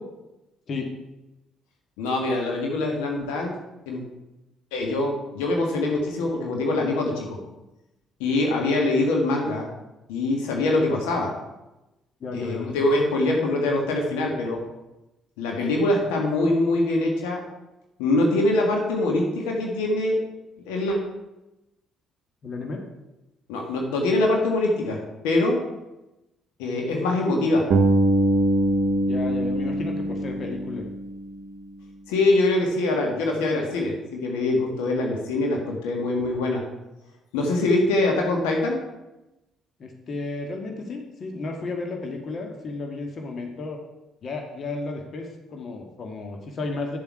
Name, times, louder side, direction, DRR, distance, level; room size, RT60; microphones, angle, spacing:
voice 1, 2.0-3.5 3.9-4.0 4.7-7.4 8.2-9.7 10.1-11.3 12.3-14.6 15.4-17.4 18.0-20.2 20.6-21.0 23.5-25.6 26.6-27.6 32.1-36.6 37.3-38.8, left 2 dB, 75° left, 0 dB, 1.6 m, -23 dB
voice 2, 12.2-12.7 22.4-22.8 29.0-30.8 39.8-43.8 44.2-47.0, left 3 dB, 50° left, 2 dB, 1.5 m, -33 dB
Bass guitar, 27.7-31.7, right 1 dB, 60° right, 0.9 m, -23 dB
10.0 x 7.2 x 4.7 m, 0.97 s
figure-of-eight pair, 45°, 0 cm